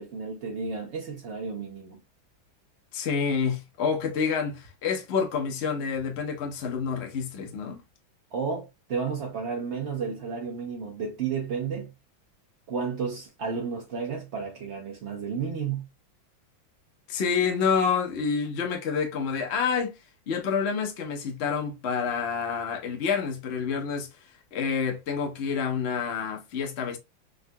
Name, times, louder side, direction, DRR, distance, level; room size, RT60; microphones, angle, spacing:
voice 1, 0.0-2.0 8.3-11.9 12.7-15.8, right 5 dB, 80° right, 0.6 m, -32 dB
voice 2, 2.9-7.8 17.1-20.0 20.3-24.1 24.5-27.0, left 6 dB, 65° left, 0.6 m, -28 dB
3.7 x 2.2 x 2.6 m
omnidirectional pair, 2.1 m